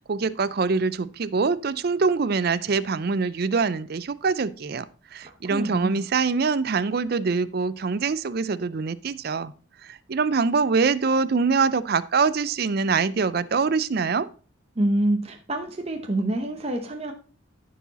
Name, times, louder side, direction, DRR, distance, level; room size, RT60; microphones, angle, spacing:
voice 1, 0.1-4.8 5.1-9.5 9.9-14.3, right 4 dB, 50° right, 16 dB, 0.4 m, -24 dB
voice 2, 5.2-6.0 14.8-17.1, right 1 dB, 30° right, 3 dB, 0.8 m, -27 dB
14.0 x 4.7 x 4.0 m, 0.39 s
head